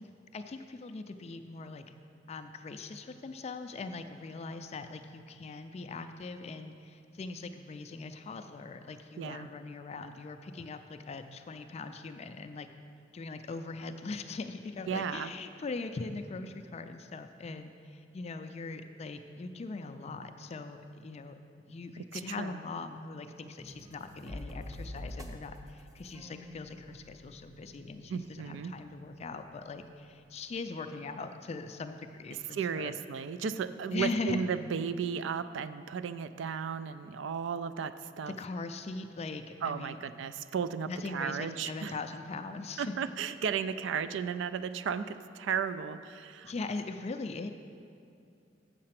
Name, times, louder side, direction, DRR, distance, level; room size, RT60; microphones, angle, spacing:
voice 1, 0.0-1.8 2.3-12.7 13.1-32.9 33.9-34.5 38.4-40.1 40.9-42.9 46.4-47.5, left 3 dB, 35° left, 8 dB, 0.3 m, -40 dB
voice 2, 9.2-9.5 14.9-15.3 22.0-22.6 28.1-28.7 32.5-38.4 39.6-42.0 42.8-46.5, right 6 dB, 70° right, 13 dB, 0.3 m, -34 dB
sound 1, 23.6-30.4, left 1 dB, 20° right, 0.6 m, -48 dB
7.5 x 6.6 x 5.8 m, 2.5 s
head